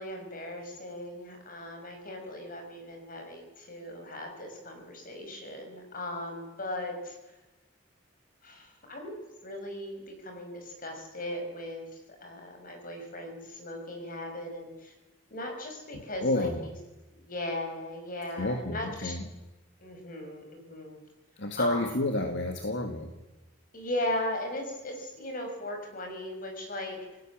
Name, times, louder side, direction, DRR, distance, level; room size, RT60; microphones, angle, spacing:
voice 1, 0.0-7.2 8.4-11.9 12.2-14.9 15.3-16.7 17.1-19.2 19.8-21.0 21.6-21.9 23.7-27.0, left 1 dB, 45° left, 3 dB, 6.5 m, -38 dB
voice 2, 16.2-16.7 18.4-19.2 21.4-23.1, left 1 dB, 65° left, 6 dB, 2.0 m, -30 dB
28.0 x 18.0 x 7.5 m, 1.1 s
head